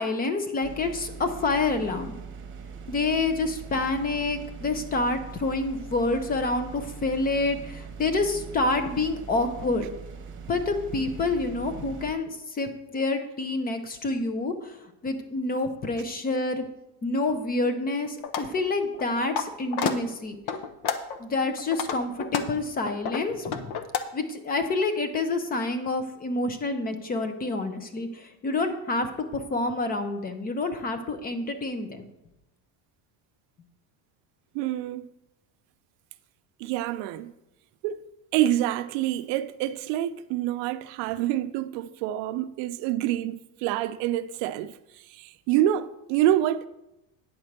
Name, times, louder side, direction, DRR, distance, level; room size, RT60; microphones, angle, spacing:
voice 1, 0.0-2.1 2.9-9.9 10.5-14.8 15.0-16.6 17.0-20.4 21.2-23.7 24.1-32.1, left 3 dB, 20° left, 0.6 m, -28 dB
sound 1, 0.6-12.1, right 6 dB, 25° right, 1.0 m, -41 dB
sound 2, 18.2-18.5 18.9-19.4 19.7-19.9 20.5-21.2 21.6-24.0, left 7 dB, 60° left, 0.8 m, -29 dB
voice 2, 34.5-35.1 36.6-37.3 37.8-38.1 38.3-44.7 45.1-46.7, right 12 dB, 70° right, 0.6 m, -27 dB
9.3 x 4.4 x 6.6 m
cardioid pair, 165°, 44 cm